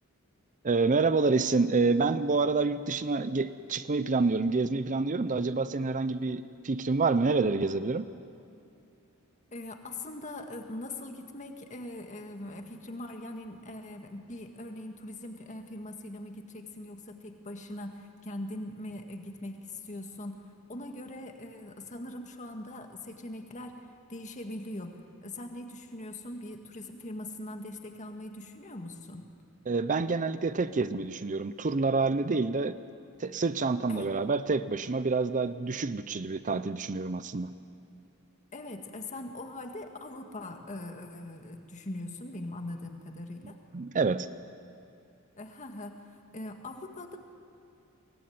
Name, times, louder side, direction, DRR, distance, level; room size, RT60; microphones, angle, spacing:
voice 1, 0.6-8.1 29.7-32.8 33.2-37.5 43.4-44.3, right 3 dB, 35° right, 13 dB, 0.6 m, -28 dB
voice 2, 9.5-20.4 20.7-29.3 33.9-34.1 38.5-43.6 45.4-46.0 46.3-47.2, left 1 dB, 35° left, 4 dB, 1.9 m, -41 dB
23.0 x 18.5 x 9.6 m, 2.6 s
head